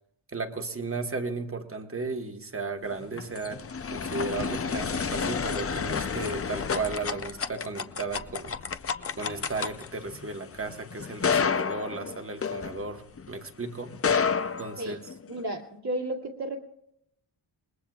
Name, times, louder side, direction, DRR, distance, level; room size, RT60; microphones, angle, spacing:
voice 1, 0.3-3.6 3.9-8.6 9.2-13.9 14.6-15.1, right 3 dB, 30° right, 6 dB, 1.2 m, -35 dB
sound 1, 2.9-13.3 13.9-15.4, left 6 dB, 30° left, 0.5 m, -30 dB
voice 2, 15.3-16.6, right 1 dB, 55° right, -1 dB, 2.3 m, -33 dB
28.5 x 20.5 x 2.3 m, 0.76 s
wide cardioid pair, 120°, 47 cm